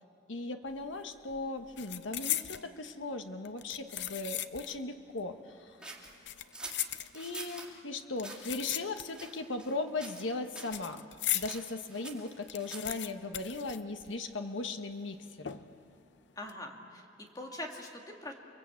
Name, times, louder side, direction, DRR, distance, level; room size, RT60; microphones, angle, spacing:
voice 1, 0.3-5.8 7.1-11.0 11.3-15.6, left 3 dB, 80° left, 6 dB, 1.3 m, -38 dB
sound 1, 0.7-1.0 1.3-2.7 3.4-4.8 5.1-5.2 6.1-7.5 8.2-9.4 9.6-11.6 12.0-12.1 12.3-14.4 14.7-14.8 15.5-15.9 16.3-16.5, left 12 dB, 65° left, 0.7 m, -38 dB
sound 2, 5.8-7.7 8.2-8.5 9.1-9.7 10.0-10.3 10.5-10.8 11.4-13.0, right 2 dB, 5° right, 2.4 m, -46 dB
voice 2, 16.4-18.3, left 1 dB, 20° left, 1 dB, 2.4 m, -43 dB
29.0 x 21.0 x 8.4 m, 2.9 s
head